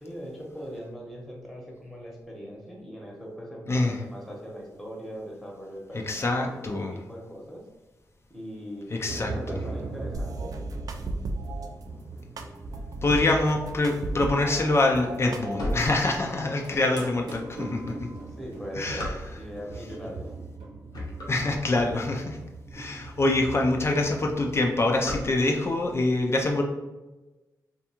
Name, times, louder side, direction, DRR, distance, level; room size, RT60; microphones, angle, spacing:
voice 1, 0.0-7.6 8.3-10.5 16.7-17.0 18.3-19.1 19.4-20.2, equal, ahead, -3 dB, 0.9 m, -40 dB
voice 2, 6.1-6.9 8.9-9.3 13.0-18.0 18.8-19.1 21.3-22.4 22.7-26.6, left 2 dB, 40° left, 1 dB, 0.4 m, -25 dB
sound 1, 9.1-24.5, right 3 dB, 90° right, 0.9 m, -41 dB
sound 2, 10.1-11.7 12.4-14.6 15.0-15.9, right 2 dB, 60° right, 0.3 m, -35 dB
sound 3, 14.9-16.7 17.2-17.3 18.0-19.7 20.3-20.5 20.8-22.4 22.9-23.0 23.2-23.3 23.6-23.9 24.2-25.8, left 1 dB, 75° left, 0.8 m, -36 dB
2.5 x 2.3 x 2.8 m, 1.1 s
cardioid pair, 55°, 7 cm